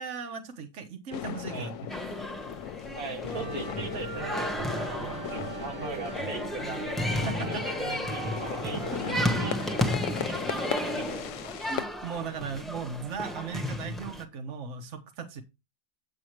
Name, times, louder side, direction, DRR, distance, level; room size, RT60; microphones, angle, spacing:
voice 1, 0.0-1.8 7.2-7.6 8.7-8.8 10.1-10.2 10.6-10.7 11.7-15.4, right 5 dB, 55° right, 6 dB, 1.5 m, -37 dB
sound 1, 1.1-11.9, left 10 dB, 70° left, 0.9 m, -37 dB
sound 2, 1.9-14.2, equal, ahead, 1.0 m, -33 dB
voice 2, 2.9-6.8 7.5-9.9 10.2-11.5, right 4 dB, 90° right, 5 dB, 2.1 m, -41 dB
sound 3, 3.3-9.5, right 3 dB, 25° right, 0.9 m, -38 dB
8.6 x 8.1 x 3.1 m, 0.24 s
omnidirectional pair, 1.5 m